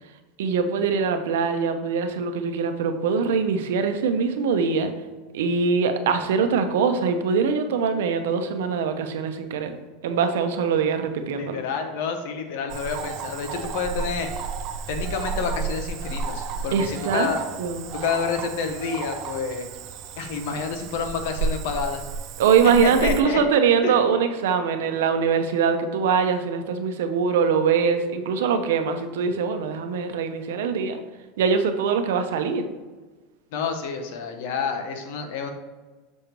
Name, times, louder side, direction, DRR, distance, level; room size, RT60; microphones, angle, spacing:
voice 1, 0.4-4.9 5.3-9.7 10.0-11.6 16.7-17.3 17.6-17.8 22.4-31.0 31.4-32.6, right 6 dB, 85° right, 7 dB, 0.7 m, -23 dB
voice 2, 11.3-14.3 14.9-17.4 17.9-19.7 20.2-22.0 22.8-23.4 23.8-24.0 33.5-35.5, left 5 dB, 60° left, 5 dB, 0.9 m, -29 dB
Cricket / Frog, 12.7-23.2, right 5 dB, 35° right, 0.4 m, -32 dB
6.3 x 5.2 x 3.0 m, 1.3 s
supercardioid pair, 165°, 0 cm